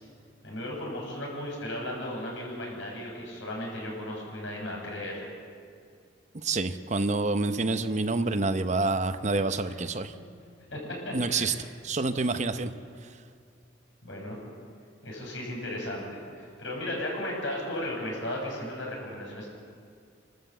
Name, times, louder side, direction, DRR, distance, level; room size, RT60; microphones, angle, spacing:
voice 1, 0.4-5.2 10.7-10.8 11.0-11.5 14.0-14.4 15.0-19.5, left 1 dB, 85° left, -2 dB, 7.8 m, -35 dB
voice 2, 6.3-10.1 11.1-11.5 11.8-12.7 13.0-13.2, right 3 dB, 40° right, 10 dB, 0.8 m, -27 dB
26.5 x 13.5 x 8.1 m, 2.2 s
head